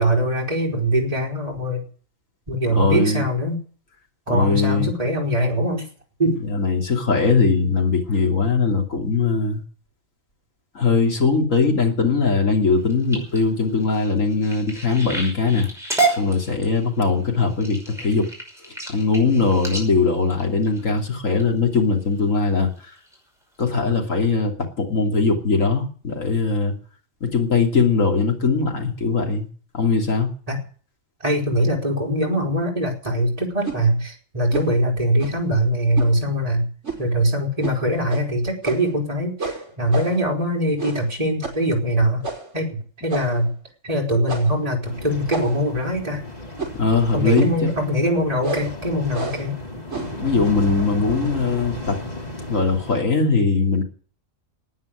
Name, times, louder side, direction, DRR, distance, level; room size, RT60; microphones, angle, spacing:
voice 1, 0.0-1.8 2.5-3.6 4.3-5.9 6.2-6.4 30.5-30.6 31.2-36.7 37.0-42.2 42.5-43.5 43.8-46.2 47.1-49.6, equal, 25° right, -1 dB, 3.9 m, -22 dB
voice 2, 2.7-3.3 4.3-4.9 6.5-9.6 10.7-15.7 16.1-18.3 18.9-22.9 23.6-26.7 27.2-29.5 29.7-30.3 46.7-47.7 50.2-52.0 52.5-53.8, left 4 dB, 70° left, 2 dB, 3.3 m, -20 dB
sound 1, 12.7-21.4 22.0-22.4 22.8-23.2 23.6-23.7 24.0-24.1, right 3 dB, ahead, 5.7 m, -30 dB
sound 2, 33.6-33.8 34.5-34.8 35.2-35.5 36.0-36.1 36.8-37.1 37.6-37.8 38.1-38.2 38.6-39.0 39.4-40.3 40.8-41.1 41.4-41.7 42.2-42.5 43.1-43.5 44.3-44.6 45.3-45.7 46.6-46.9 47.3-47.6 48.4-48.7 49.1-49.5 49.9-50.2, right 3 dB, 60° right, 6.0 m, -31 dB
sound 3, 44.8-53.0, left 1 dB, 30° left, 2.9 m, -34 dB
14.5 x 9.5 x 9.9 m, 0.43 s
omnidirectional pair, 1.4 m